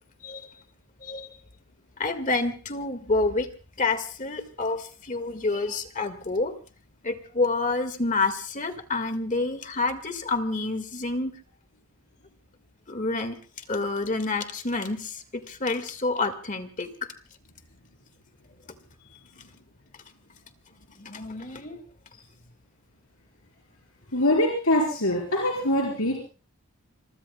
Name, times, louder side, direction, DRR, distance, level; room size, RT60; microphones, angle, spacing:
voice 1, 2.0-3.5 3.8-6.5 7.0-11.3 12.9-13.4 13.7-17.1 21.0-21.8, left 3 dB, 35° left, 9 dB, 1.7 m, -28 dB
voice 2, 24.1-26.2, left 1 dB, 70° left, 0 dB, 4.3 m, -23 dB
26.5 x 23.0 x 2.2 m, 0.36 s
head